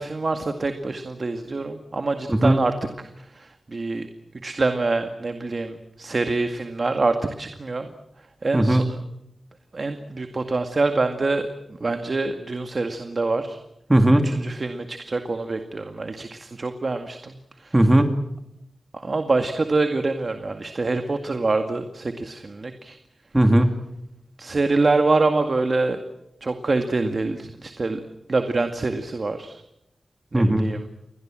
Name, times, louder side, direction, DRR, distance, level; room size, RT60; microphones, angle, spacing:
voice 1, 0.0-2.7 3.2-4.1 4.4-7.9 8.4-9.0 9.7-11.5 11.8-13.6 14.2-17.3 17.6-17.8 18.9-23.0 24.4-26.0 26.4-28.0 28.3-29.6 30.3-30.9, right 3 dB, 50° right, 7 dB, 2.1 m, -25 dB
voice 2, 13.9-14.3 17.7-18.1 23.3-23.7 30.3-30.6, right 1 dB, 20° right, 6 dB, 2.7 m, -17 dB
29.5 x 22.0 x 7.7 m, 0.82 s
wide cardioid pair, 85°, 0 cm